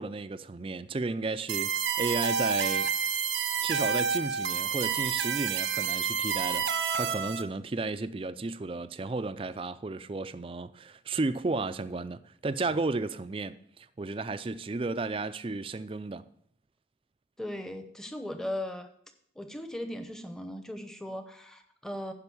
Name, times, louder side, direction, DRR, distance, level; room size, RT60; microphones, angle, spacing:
voice 1, 0.0-2.9 3.6-6.7 6.9-16.2, right 3 dB, 30° right, 0.4 m, -33 dB
sound 1, 1.5-7.4, right 7 dB, 90° right, 0.8 m, -29 dB
voice 2, 17.4-18.9 19.4-22.1, left 1 dB, 5° left, 0.8 m, -38 dB
10.5 x 5.3 x 6.9 m
head